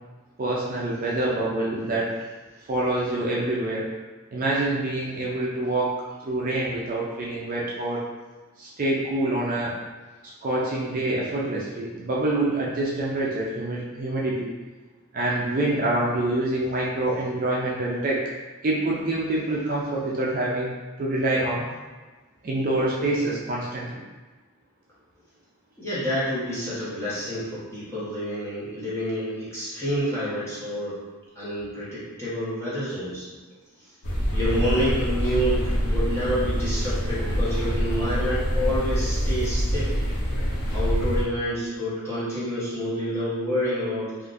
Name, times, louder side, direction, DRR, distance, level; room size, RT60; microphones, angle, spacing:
voice 1, 0.4-2.1 2.7-3.9 4.3-5.9 6.2-8.0 8.6-9.7 10.4-14.5 15.1-18.2 18.6-20.7 21.0-21.7 22.4-24.0, right 2 dB, 40° right, -5 dB, 0.5 m, -26 dB
voice 2, 25.8-31.0 31.3-33.4 34.3-40.0 40.7-44.3, equal, 15° left, -11 dB, 1.0 m, -28 dB
sound 1, 34.0-41.2, equal, 80° left, 0.7 m, -25 dB
3.6 x 2.5 x 2.5 m, 1.3 s
head